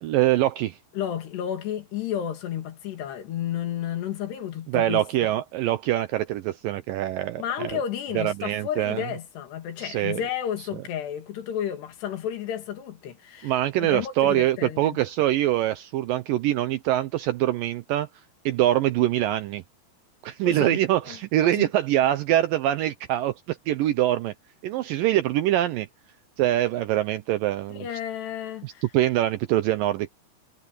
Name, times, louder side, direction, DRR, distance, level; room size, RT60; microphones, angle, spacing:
voice 1, 0.0-0.8 4.7-7.8 8.2-9.0 9.8-10.2 13.4-18.1 18.5-19.6 20.2-24.3 24.6-25.9 26.4-27.9 28.6-30.1, right 13 dB, 80° right, 2.0 m, -24 dB
voice 2, 0.9-5.3 7.4-13.5 13.8-15.0 20.4-20.8 21.1-21.2 21.4-21.7 27.7-28.9, left 10 dB, 85° left, 4.4 m, -32 dB
omnidirectional pair, 4.7 m